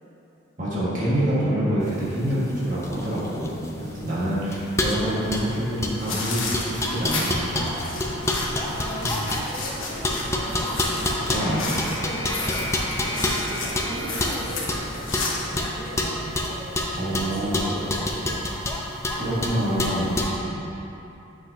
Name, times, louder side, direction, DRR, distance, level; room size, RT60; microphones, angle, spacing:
voice 1, 0.6-6.4 6.7-7.8 9.0-9.2 11.3-11.7 17.0-17.6 19.2-20.1, right 1 dB, 40° right, -9 dB, 1.5 m, -26 dB
sound 1, 1.9-20.4, left 1 dB, 15° left, 0.5 m, -28 dB
sound 2, 6.0-15.6, left 2 dB, 75° left, 1.1 m, -32 dB
voice 2, 8.1-18.3 20.3-20.7, equal, 65° right, -8 dB, 1.5 m, -39 dB
8.7 x 6.1 x 2.7 m, 2.9 s
head